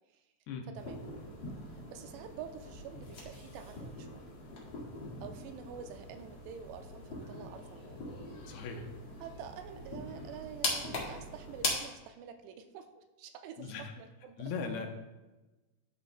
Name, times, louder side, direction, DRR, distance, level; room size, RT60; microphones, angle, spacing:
sound 1, 0.7-11.7, left 2 dB, 40° left, 1.8 m, -41 dB
voice 1, 0.7-1.0 1.7-4.2 5.2-8.0 9.2-14.4, right 8 dB, 85° right, 7 dB, 2.7 m, -48 dB
voice 2, 8.5-8.8 13.6-13.9 14.4-14.9, left 5 dB, 75° left, 3 dB, 2.6 m, -38 dB
12.0 x 10.0 x 2.2 m, 1.1 s
omnidirectional pair, 4.8 m